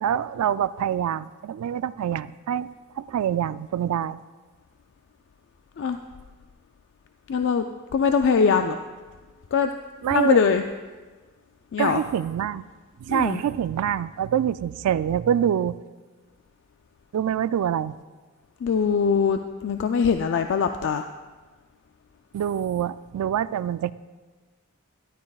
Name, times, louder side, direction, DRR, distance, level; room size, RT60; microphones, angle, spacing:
voice 1, 0.0-2.7 3.0-4.2 10.0-10.4 11.8-12.6 13.0-15.8 17.1-17.9 22.3-23.9, right 9 dB, 85° right, 16 dB, 0.3 m, -25 dB
voice 2, 7.3-7.7 7.9-8.8 9.5-9.7 10.1-10.6 11.7-12.0 13.1-13.4 18.6-21.1, left 6 dB, 55° left, 7 dB, 0.3 m, -22 dB
13.0 x 11.0 x 2.3 m, 1.4 s
head